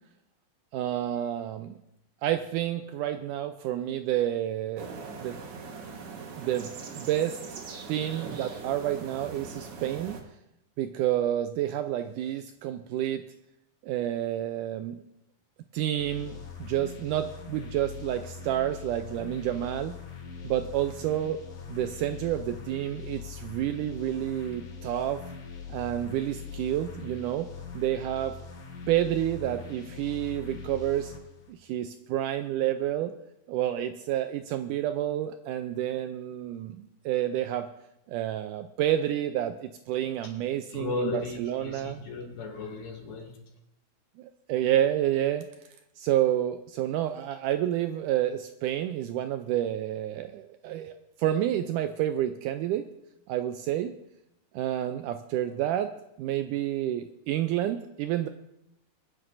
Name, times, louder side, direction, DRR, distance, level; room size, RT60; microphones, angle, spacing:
voice 1, 0.7-1.8 2.2-4.9 5.2-5.4 6.4-7.6 7.9-10.2 10.8-13.2 13.8-15.0 15.7-20.0 20.4-21.4 21.7-25.2 25.7-28.3 28.9-31.1 31.5-33.1 33.5-37.7 38.1-41.1 41.4-42.0 44.2-45.5 46.0-52.9 53.3-53.9 54.5-58.3, right 12 dB, 85° right, 8 dB, 1.8 m, -29 dB
sound 1, 4.8-10.2, right 4 dB, 55° right, 1.8 m, -41 dB
sound 2, 16.0-31.5, left 6 dB, 65° left, 3.6 m, -42 dB
voice 2, 40.7-43.4, left 3 dB, 80° left, -2 dB, 4.0 m, -35 dB
25.0 x 9.8 x 2.6 m, 0.83 s
omnidirectional pair, 4.1 m